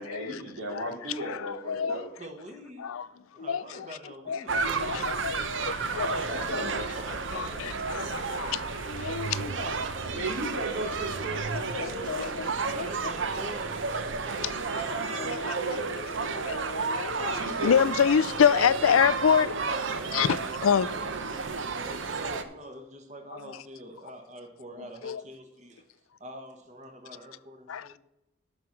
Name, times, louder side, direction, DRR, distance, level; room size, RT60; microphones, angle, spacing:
voice 1, 0.0-2.1 6.3-6.8 10.1-12.4 17.1-17.9, right 1 dB, 80° right, 2.9 m, -36 dB
voice 2, 1.2-2.0 2.8-3.1 3.4-3.9 4.3-6.8 7.3-9.8 11.5-12.9 14.7-19.5 20.1-20.9 25.0-25.2 27.7-27.9, left 7 dB, 85° left, 0.4 m, -28 dB
voice 3, 1.9-5.0 5.8-7.8 12.7-16.7 17.0-17.9 19.8-21.0 21.6-25.8 26.2-27.9, right 1 dB, 35° right, 1.5 m, -46 dB
sound 1, 4.5-22.4, right 4 dB, 65° right, 0.8 m, -32 dB
11.5 x 6.2 x 5.9 m
head